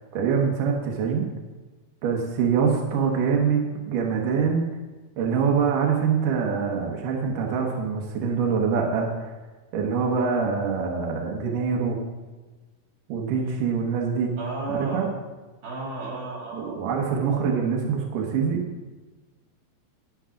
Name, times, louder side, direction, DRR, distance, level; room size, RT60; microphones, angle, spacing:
voice 1, 0.1-1.3 2.0-4.7 5.2-9.3 9.7-12.0 13.1-14.3 14.7-15.1 16.5-18.6, right 6 dB, 70° right, 0 dB, 2.6 m, -24 dB
voice 2, 14.4-15.1 15.6-16.8, right 3 dB, 85° right, -2 dB, 4.9 m, -33 dB
11.5 x 10.0 x 3.8 m, 1.3 s
omnidirectional pair, 4.3 m